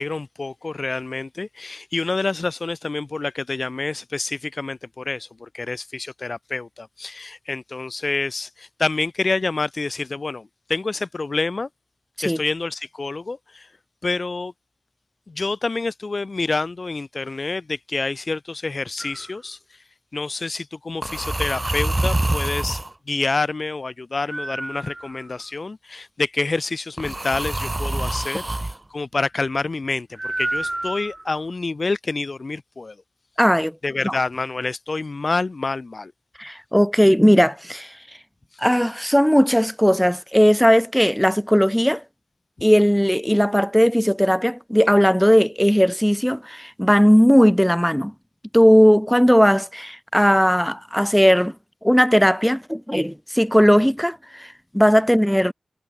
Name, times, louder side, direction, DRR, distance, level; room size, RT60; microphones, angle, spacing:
voice 1, 0.0-11.7 12.2-13.7 14.0-14.5 15.3-19.6 20.1-33.0 33.8-36.1, left 3 dB, 55° left, 3.2 m, -27 dB
sound 1, 19.0-19.3 21.0-22.9 24.3-25.4 27.0-28.8 30.2-31.4, right 2 dB, 30° right, 2.7 m, -26 dB
voice 2, 33.4-33.7 34.0-34.1 36.4-37.9 38.6-42.0 42.6-48.1 48.5-51.5 51.8-55.5, equal, 5° left, 3.1 m, -17 dB
cardioid pair, 40°, 0 cm